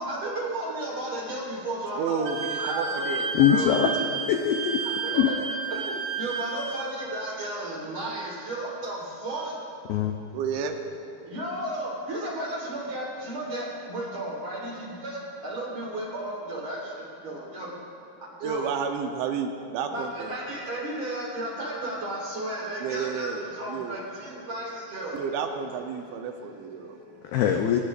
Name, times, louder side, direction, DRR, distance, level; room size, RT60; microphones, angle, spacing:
voice 1, 0.0-3.5 4.8-9.6 10.2-10.4 11.2-18.7 19.9-25.2 26.2-27.4, right 1 dB, 40° right, -5 dB, 4.6 m, -34 dB
voice 2, 2.0-3.8 10.3-10.8 18.4-20.3 22.8-24.0 25.1-27.0, right 6 dB, 80° right, 4 dB, 3.2 m, -31 dB
Wind instrument woodwind instrument, 2.3-6.9, right 4 dB, 60° right, 3.0 m, -31 dB
voice 3, 3.3-3.9 4.3-4.8 5.1-5.3 9.9-10.1 27.3-27.8, left 10 dB, 85° left, 3 dB, 2.1 m, -22 dB
22.0 x 18.5 x 2.6 m, 2.6 s
omnidirectional pair, 5.3 m